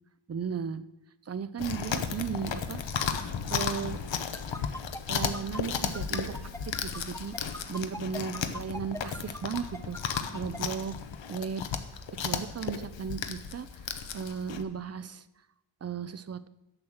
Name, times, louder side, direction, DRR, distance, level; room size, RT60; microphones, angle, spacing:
voice 1, 0.3-0.8 1.3-4.0 5.1-6.4 6.7-7.3 7.7-10.0 10.3-11.0 11.3-11.7 12.2-13.7 14.1-15.2 15.8-16.5, right 6 dB, 35° right, 15 dB, 0.5 m, -35 dB
Chewing mastication, 1.6-14.6, left 7 dB, 70° left, 0.9 m, -34 dB
sound 1, 4.3-10.6, left 1 dB, 5° left, 0.8 m, -40 dB
7.7 x 7.2 x 6.4 m, 0.93 s
cardioid pair, 75°, 46 cm